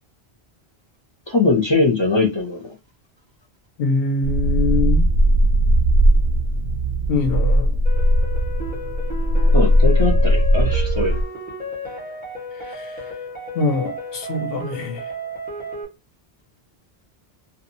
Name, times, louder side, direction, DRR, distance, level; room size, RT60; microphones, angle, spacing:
voice 1, 1.3-2.6 9.5-11.2, left 3 dB, 35° left, 0.5 m, -20 dB
voice 2, 3.8-5.1 7.1-7.8 12.5-13.1 13.5-15.1, left 3 dB, 70° left, 0.9 m, -24 dB
sound 1, 4.2-11.2, equal, 55° right, 0.6 m, -18 dB
sound 2, 7.8-15.8, left 1 dB, 10° right, 0.9 m, -33 dB
2.7 x 2.3 x 2.6 m
omnidirectional pair, 1.1 m